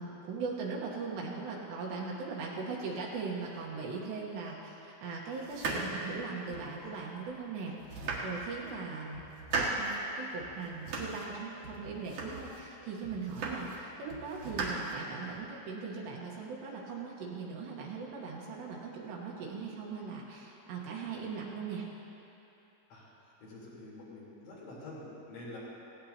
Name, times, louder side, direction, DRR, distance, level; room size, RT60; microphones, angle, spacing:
voice 1, 0.0-4.7 5.0-9.2 9.5-21.9, right 4 dB, 75° right, -3 dB, 3.1 m, -39 dB
sound 1, 5.4-6.8 7.3-7.4 7.8-8.7 9.1-10.0 10.4-11.3 11.6-12.6 13.0-13.8 14.1-15.4, right 3 dB, 55° right, 2.2 m, -37 dB
voice 2, 23.4-25.6, left 2 dB, 70° left, -8 dB, 6.1 m, -47 dB
17.5 x 17.0 x 2.9 m, 2.9 s
omnidirectional pair, 5.6 m